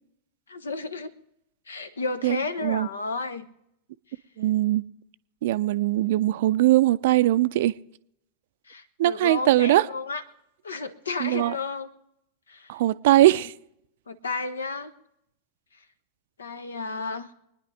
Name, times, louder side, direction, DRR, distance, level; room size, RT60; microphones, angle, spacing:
voice 1, 0.5-1.1 1.7-3.5 8.7-10.2 10.6-11.9 12.5-12.7 13.1-13.4 14.1-14.9 16.4-17.3, left 4 dB, 70° left, 1.0 m, -32 dB
voice 2, 2.2-2.9 4.4-4.8 5.4-7.7 9.0-9.9 11.2-11.6 12.7-13.5, right 15 dB, 55° right, 0.5 m, -21 dB
25.0 x 10.0 x 3.3 m
figure-of-eight pair, 90°, 0 cm